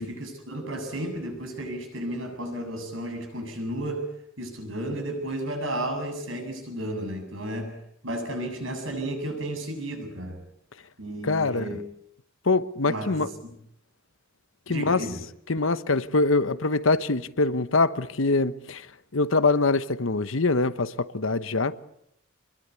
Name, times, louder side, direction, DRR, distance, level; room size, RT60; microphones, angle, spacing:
voice 1, 0.0-4.1 4.4-7.8 8.0-10.4 11.0-11.8 12.9-13.5 14.7-15.2, right 1 dB, 75° right, 7.7 m, -33 dB
voice 2, 11.2-11.7 12.4-13.3 14.7-15.0 15.5-18.9 19.1-21.8, left 3 dB, 80° left, 1.1 m, -24 dB
26.0 x 22.0 x 8.4 m
head